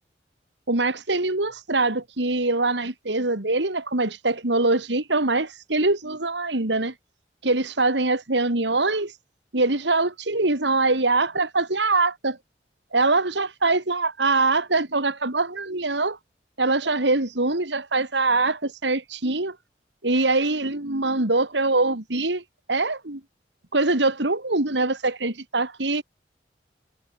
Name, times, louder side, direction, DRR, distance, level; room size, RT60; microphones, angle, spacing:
voice 1, 0.7-6.9 7.4-9.1 9.5-12.4 12.9-16.2 16.6-19.6 20.0-22.4 22.7-23.2 23.7-26.0, right 3 dB, 85° right, 2.8 m, -23 dB
head